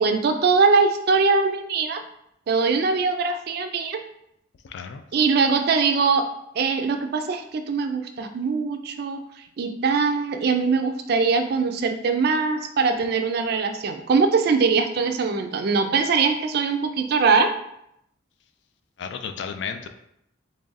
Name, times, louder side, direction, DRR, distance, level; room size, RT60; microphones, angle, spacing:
voice 1, 0.0-2.0 2.5-4.0 5.1-6.3 6.6-9.2 9.6-17.5, right 4 dB, 50° right, 6 dB, 0.3 m, -22 dB
voice 2, 4.6-5.0 19.0-19.9, left 6 dB, 60° left, 7 dB, 0.3 m, -33 dB
3.2 x 2.5 x 3.9 m, 0.77 s
head